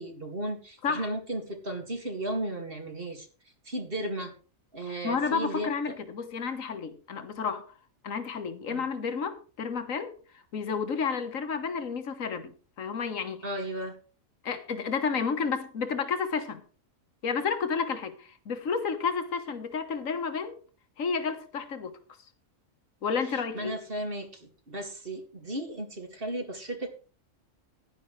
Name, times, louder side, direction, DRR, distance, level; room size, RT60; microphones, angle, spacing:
voice 1, 0.0-3.3 3.6-4.3 4.7-6.0 8.7-8.9 13.4-14.0 23.5-26.9, right 1 dB, 40° right, 2.5 m, -35 dB
voice 2, 5.0-7.6 8.0-10.1 10.5-13.4 14.4-16.6 17.2-20.6 21.0-21.9 23.0-23.7, left 5 dB, 70° left, 1.7 m, -31 dB
15.5 x 11.0 x 3.3 m
omnidirectional pair, 1.4 m